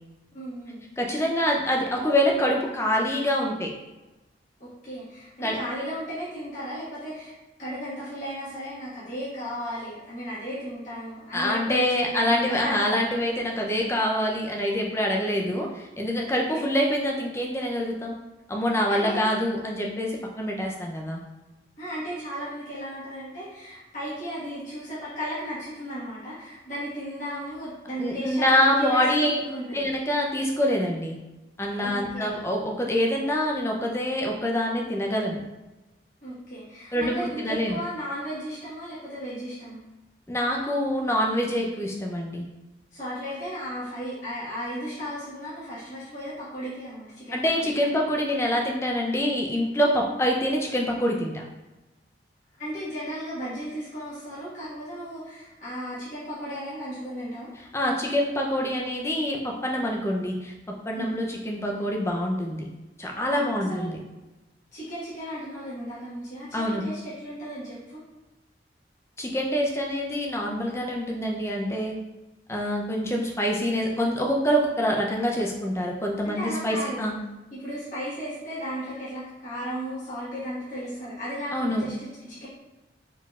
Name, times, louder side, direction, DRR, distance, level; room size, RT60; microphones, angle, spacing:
voice 1, 0.3-0.8 4.6-7.3 7.6-12.7 16.2-16.7 18.9-19.3 21.8-29.9 31.8-32.3 36.2-39.8 42.9-47.9 52.6-57.5 60.9-61.2 63.3-63.9 64.7-68.0 76.2-77.0 77.5-82.5, equal, 45° left, -11 dB, 1.3 m, -35 dB
voice 2, 1.0-3.7 5.4-5.6 11.3-18.2 18.5-21.2 28.0-29.4 29.7-31.2 31.6-35.4 36.9-37.8 40.3-42.4 47.3-51.4 57.7-62.6 63.0-64.0 66.5-66.8 69.2-71.9 72.5-77.1 81.5-81.9, equal, 15° left, 0 dB, 0.5 m, -25 dB
4.4 x 3.7 x 2.4 m, 1.1 s
head